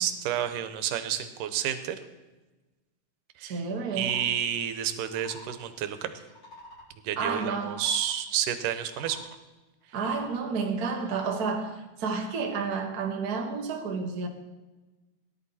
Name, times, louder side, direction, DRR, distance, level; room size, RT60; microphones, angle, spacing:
voice 1, 0.0-2.0 3.4-3.6 3.9-6.2 7.0-9.2, right 9 dB, 80° right, 2.5 m, -30 dB
voice 2, 3.4-4.2 7.2-7.8 9.9-14.3, right 5 dB, 45° right, 1.2 m, -30 dB
sound 1, 3.9-4.3 4.9-5.6 6.2-6.9 7.5-8.2 8.8-9.2 9.8-10.4 10.9-11.4, left 2 dB, 40° left, 4.8 m, -48 dB
18.0 x 11.0 x 4.3 m
omnidirectional pair, 3.8 m